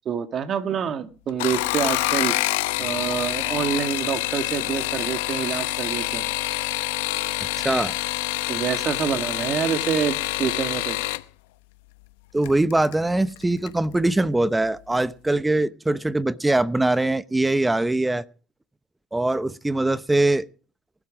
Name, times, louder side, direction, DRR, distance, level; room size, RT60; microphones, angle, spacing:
voice 1, 0.1-2.4 2.8-6.3 8.5-11.0, right 7 dB, 50° right, 1.9 m, -27 dB
sound 1, 1.3-11.2 12.4-12.9 13.4-13.8 14.1-14.2, left 19 dB, 90° left, 0.7 m, -26 dB
voice 2, 7.6-8.0 12.3-18.2 19.1-20.5, right 2 dB, 10° right, 0.8 m, -22 dB
19.5 x 12.5 x 5.1 m
supercardioid pair, 80°, 0 cm